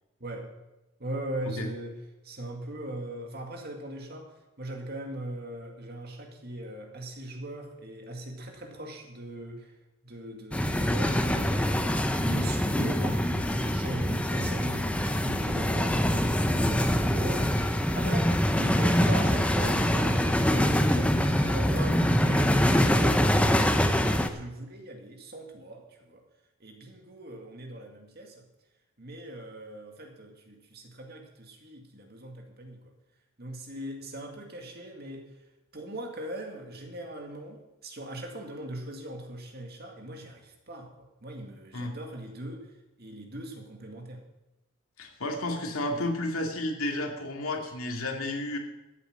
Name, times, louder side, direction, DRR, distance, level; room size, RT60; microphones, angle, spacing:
voice 1, 0.2-0.5 1.0-2.0 2.2-9.7 10.0-26.2 26.6-28.4 29.0-32.8 33.4-35.3 35.7-42.7 43.0-44.2, right 1 dB, 50° right, 3 dB, 2.2 m, -39 dB
sound 1, 10.5-24.3, equal, 5° left, 0.7 m, -24 dB
voice 2, 45.0-48.6, left 1 dB, 85° left, 2 dB, 2.4 m, -32 dB
14.0 x 8.4 x 6.4 m, 1.0 s
head